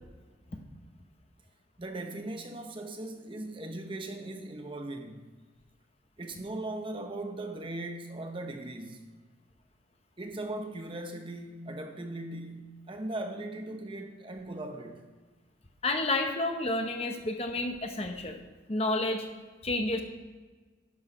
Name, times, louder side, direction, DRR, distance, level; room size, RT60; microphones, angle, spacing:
voice 1, 1.8-5.3 6.2-9.1 10.2-15.1, right 2 dB, 25° right, 0.8 m, -39 dB
voice 2, 15.8-18.4 18.7-19.3 19.6-20.0, left 2 dB, 30° left, 0.9 m, -30 dB
11.0 x 6.4 x 4.9 m
head